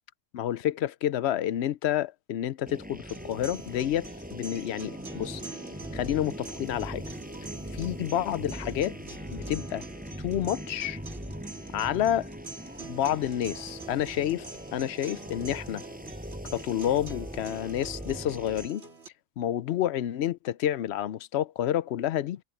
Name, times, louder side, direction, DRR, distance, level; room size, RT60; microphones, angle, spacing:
voice 1, 0.3-5.4 5.9-7.1 7.8-9.0 9.3-9.8 10.2-11.0 11.7-12.3 12.9-15.8 16.5-18.8 19.4-22.4, left 11 dB, 65° left, 0.8 m, -29 dB
sound 1, 2.7-18.7, equal, 5° right, 5.3 m, -41 dB
sound 2, 3.1-19.1, right 3 dB, 55° right, 2.9 m, -45 dB
omnidirectional pair, 1.4 m